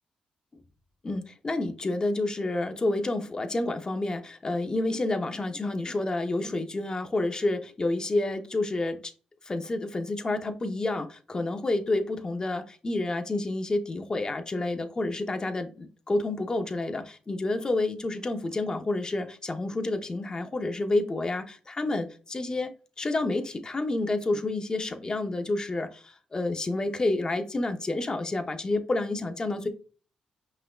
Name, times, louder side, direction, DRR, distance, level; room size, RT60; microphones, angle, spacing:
voice 1, 1.0-9.1 9.5-22.7 23.0-29.7, left 2 dB, 30° left, 0.8 m, -29 dB
5.5 x 3.8 x 2.3 m
cardioid pair, 75°, 3 cm